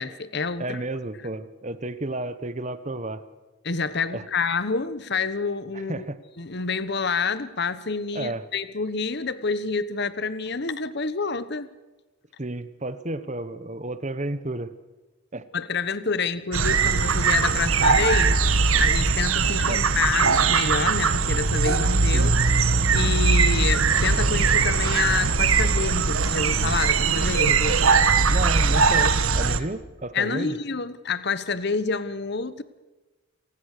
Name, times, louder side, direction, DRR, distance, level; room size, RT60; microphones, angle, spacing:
voice 1, 0.0-0.8 3.6-6.0 6.4-11.7 15.5-18.4 18.8-22.3 22.9-27.8 30.1-32.6, left 4 dB, 50° left, 15 dB, 1.1 m, -28 dB
voice 2, 0.6-3.2 4.1-4.2 5.7-6.2 8.1-8.4 12.4-14.7 15.3-15.4 19.7-19.8 22.1-22.3 28.3-30.6, right 2 dB, 35° right, 13 dB, 1.1 m, -31 dB
sound 1, 16.5-29.6, right 4 dB, 75° right, 1.4 m, -20 dB
28.0 x 19.5 x 6.7 m, 1.2 s
head